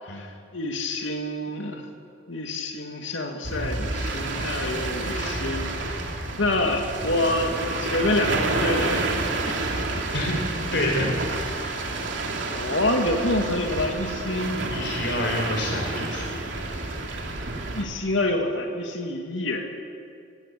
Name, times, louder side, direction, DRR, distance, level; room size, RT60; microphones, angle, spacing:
voice 1, 0.0-1.9 2.3-5.9 6.4-9.1 9.9-10.0 11.6-12.1 12.5-14.7 17.7-19.7, left 1 dB, 80° left, 3 dB, 2.5 m, -27 dB
sound 1, 3.4-17.8, right 2 dB, 75° right, 3.0 m, -29 dB
voice 2, 10.7-11.1 14.7-16.5, left 1 dB, 65° left, 1 dB, 4.6 m, -27 dB
22.5 x 18.5 x 8.7 m, 2.3 s
head